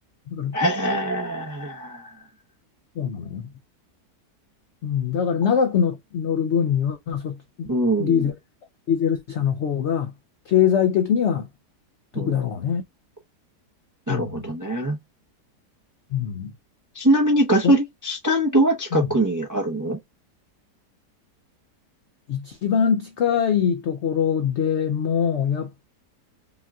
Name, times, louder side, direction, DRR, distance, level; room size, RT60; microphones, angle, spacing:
voice 1, 0.5-2.1 7.7-8.2 12.1-12.3 14.1-15.0 16.9-20.0, right 1 dB, 25° right, 0.4 m, -22 dB
voice 2, 3.0-3.5 4.8-7.7 8.0-8.3 8.9-10.1 10.5-11.5 12.1-12.8 14.1-14.5 16.1-16.5 17.6-17.8 18.9-19.1 22.3-25.8, left 8 dB, 75° left, 0.6 m, -23 dB
5.3 x 2.3 x 2.6 m
omnidirectional pair, 1.8 m